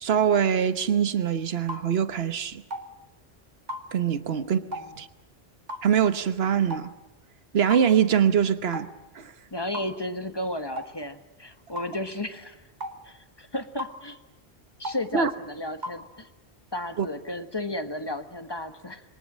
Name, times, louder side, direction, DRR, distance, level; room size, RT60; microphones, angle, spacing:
voice 1, 0.0-2.6 3.9-4.6 5.0-5.1 5.8-6.9 7.5-8.9 9.1-9.3 15.1-15.3 17.0-17.1, right 8 dB, 65° right, 11 dB, 1.3 m, -23 dB
sound 1, 1.7-1.9 2.7-2.9 3.7-3.9 4.7-4.9 5.7-5.9 6.7-6.9 7.7-7.9 8.7-8.9 9.7-9.9 10.8-10.9 11.8-11.9 12.8-13.0 13.8-14.0 14.8-15.0 15.8-16.0, equal, 40° right, 2.0 m, -35 dB
voice 2, 4.3-4.9 9.5-12.6 13.0-14.2 14.8-16.3 16.7-19.0, left 1 dB, 25° left, 8 dB, 1.5 m, -34 dB
27.0 x 23.0 x 7.5 m, 1.0 s
omnidirectional pair, 1.1 m